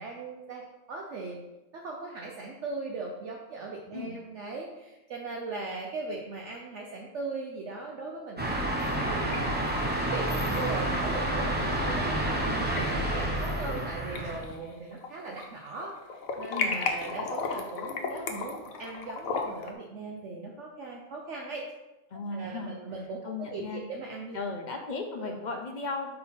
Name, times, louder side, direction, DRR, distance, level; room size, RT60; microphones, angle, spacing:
voice 1, 0.0-1.4 1.7-15.9 16.4-21.6 22.3-24.4 25.2-25.3, right 3 dB, 60° right, -1 dB, 0.9 m, -39 dB
sound 1, 8.4-14.4, right 1 dB, 10° right, 0.6 m, -29 dB
sound 2, 8.8-9.4 9.7-9.8 11.3-11.4 12.4-12.8 13.3-13.8 14.2-15.5 15.8-19.7, left 4 dB, 75° left, 1.1 m, -34 dB
voice 2, 16.5-16.8 22.1-22.8 23.2-23.8 24.3-26.2, left 3 dB, 55° left, 3 dB, 0.5 m, -36 dB
4.4 x 3.9 x 5.6 m, 1.0 s
omnidirectional pair, 1.5 m